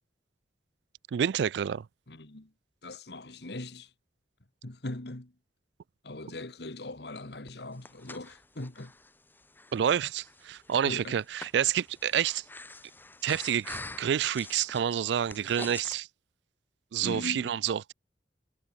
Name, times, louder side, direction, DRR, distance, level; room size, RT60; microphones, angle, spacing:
voice 1, 1.1-1.9 9.7-12.4 13.2-16.1 16.9-17.9, right 9 dB, 70° right, 0.3 m, -28 dB
voice 2, 2.1-2.5 2.8-3.9 4.6-5.3 6.0-8.9 10.9-11.2 17.0-17.6, left 2 dB, 65° left, 1.8 m, -40 dB
Breathing, 7.5-16.0, left 2 dB, 10° left, 1.1 m, -46 dB
head